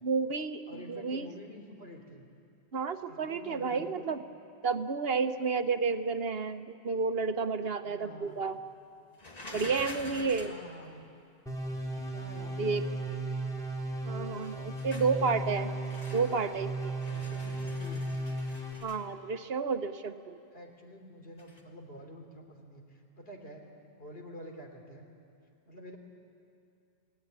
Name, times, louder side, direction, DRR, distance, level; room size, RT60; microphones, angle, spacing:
voice 1, 0.0-0.6 0.9-1.3 2.7-4.2 4.6-8.6 9.5-10.5 12.6-12.8 14.1-15.7 16.1-17.0 18.8-20.4, right 5 dB, 70° right, 9 dB, 1.2 m, -31 dB
voice 2, 0.7-2.3 3.1-4.2 7.8-8.5 10.4-11.0 12.1-13.2 14.8-15.7 17.1-18.1 20.5-23.6 24.0-25.1 25.7-26.0, equal, 70° left, 2 dB, 3.6 m, -48 dB
sound 1, 9.2-10.6 14.4-15.2 15.8-16.5 16.8-19.0 21.4-21.6, left 2 dB, 40° left, 2.2 m, -46 dB
sound 2, 11.5-18.7, right 1 dB, 5° left, 3.2 m, -35 dB
29.0 x 17.5 x 9.6 m, 2.5 s
omnidirectional pair, 1.0 m